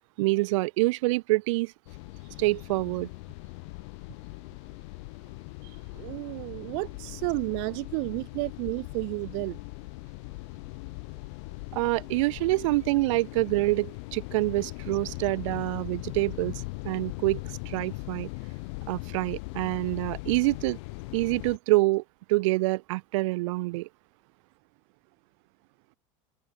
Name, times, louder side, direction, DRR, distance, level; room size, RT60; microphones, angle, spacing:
voice 1, 0.2-1.7 2.4-3.1 11.7-18.3 18.9-20.8 21.1-22.0 22.3-23.9, right 21 dB, 85° right, 1.0 m, -26 dB
sound 1, 1.9-21.6, left 28 dB, 70° left, 1.4 m, -40 dB
voice 2, 5.6-9.6, right 39 dB, 60° right, 0.7 m, -32 dB
open air
cardioid pair, 165°, 16 cm